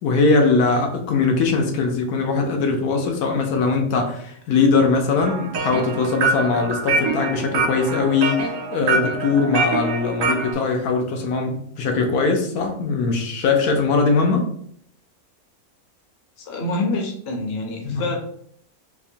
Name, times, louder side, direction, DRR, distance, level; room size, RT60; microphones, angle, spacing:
voice 1, 0.0-14.5 17.8-18.0, left 4 dB, 85° left, 3 dB, 1.2 m, -21 dB
sound 1, 5.2-10.5, right 3 dB, 90° right, 1.1 m, -25 dB
voice 2, 16.5-18.2, left 2 dB, 50° left, 1 dB, 0.9 m, -26 dB
4.5 x 2.1 x 2.7 m, 0.64 s
omnidirectional pair, 1.6 m